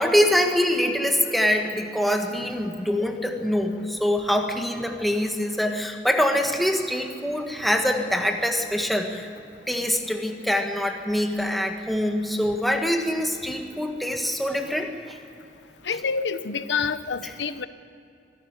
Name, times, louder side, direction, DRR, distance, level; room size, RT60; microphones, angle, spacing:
voice 1, 0.0-9.3 9.7-15.2 17.2-17.3, equal, ahead, 3 dB, 1.6 m, -24 dB
voice 2, 15.9-17.7, left 5 dB, 90° left, 12 dB, 0.9 m, -27 dB
24.0 x 12.0 x 9.7 m, 2.8 s
head